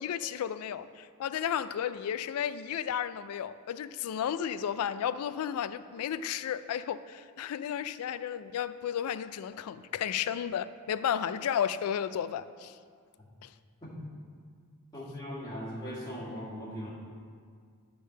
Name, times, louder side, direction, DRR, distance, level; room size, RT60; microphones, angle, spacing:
voice 1, 0.0-12.8 13.4-13.5, left 9 dB, 75° left, 15 dB, 0.3 m, -33 dB
voice 2, 14.9-16.9, equal, 20° left, -7 dB, 1.7 m, -39 dB
9.8 x 3.4 x 6.4 m, 2.1 s
head